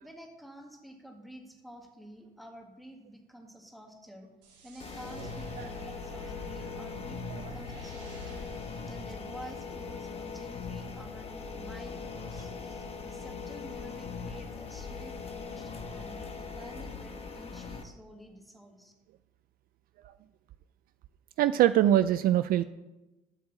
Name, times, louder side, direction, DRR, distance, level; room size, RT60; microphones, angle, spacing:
voice 1, 0.0-4.3 4.6-8.5 8.9-18.9, equal, ahead, 2 dB, 1.7 m, -49 dB
sound 1, 4.4-9.8, right 1 dB, 90° right, 3.3 m, -49 dB
sound 2, 4.8-17.8, left 5 dB, 35° left, 1.1 m, -40 dB
voice 2, 21.4-22.6, right 12 dB, 55° right, 13 dB, 0.4 m, -23 dB
7.8 x 6.2 x 7.2 m, 1.1 s
cardioid pair, 110°, 18 cm